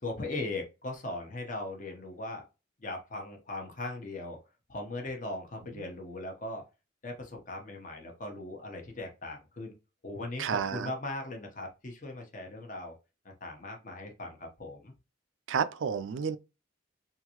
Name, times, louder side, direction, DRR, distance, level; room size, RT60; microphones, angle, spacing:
voice 1, 0.0-2.4 2.8-4.4 4.7-6.6 7.0-9.7 10.0-12.9 13.2-14.9, left 2 dB, 40° left, 0.9 m, -39 dB
voice 2, 10.4-10.9 15.5-16.4, right 6 dB, 80° right, 0.4 m, -30 dB
3.7 x 2.6 x 2.9 m
head